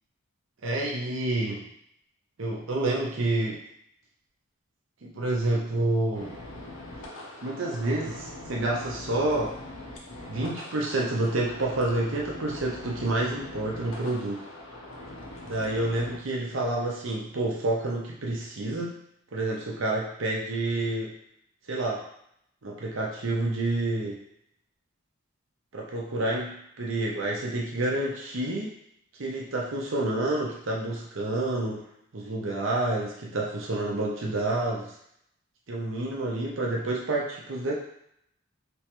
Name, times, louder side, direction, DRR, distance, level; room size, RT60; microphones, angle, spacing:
voice 1, 0.6-1.7 2.4-3.6 5.1-6.3 7.4-9.6 10.3-14.4 15.5-19.0 19.3-21.2 21.7-22.0 22.6-24.2 25.7-28.7 29.2-31.8 32.1-34.9 35.7-37.7, right 2 dB, 65° right, -2 dB, 0.6 m, -28 dB
sound 1, 6.1-16.2, left 1 dB, 65° left, 0.6 m, -42 dB
3.3 x 3.0 x 2.9 m, 0.72 s
head